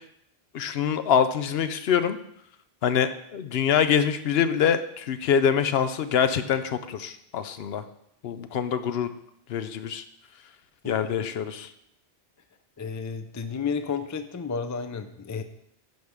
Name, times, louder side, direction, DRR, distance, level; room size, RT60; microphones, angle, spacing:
voice 1, 0.5-2.2 2.8-7.8 8.2-9.1 9.5-10.0 10.8-11.7, left 8 dB, 70° left, 11 dB, 0.8 m, -25 dB
voice 2, 10.8-11.3 12.8-15.4, left 5 dB, 30° left, 9 dB, 0.3 m, -32 dB
10.5 x 3.6 x 6.5 m, 0.74 s
omnidirectional pair, 1.1 m